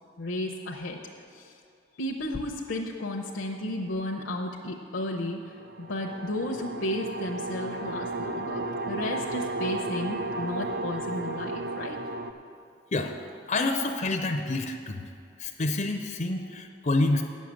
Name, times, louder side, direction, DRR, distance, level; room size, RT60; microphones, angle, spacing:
voice 1, 0.2-1.0 1.3-1.6 2.0-5.4 5.8-12.0, left 1 dB, 70° left, 0 dB, 0.7 m, -33 dB
sound 1, 5.5-12.3, right 2 dB, 50° right, 0.4 m, -34 dB
voice 2, 13.5-15.0 15.4-17.2, left 2 dB, 40° left, 5 dB, 0.5 m, -27 dB
9.2 x 6.4 x 8.2 m, 2.5 s
head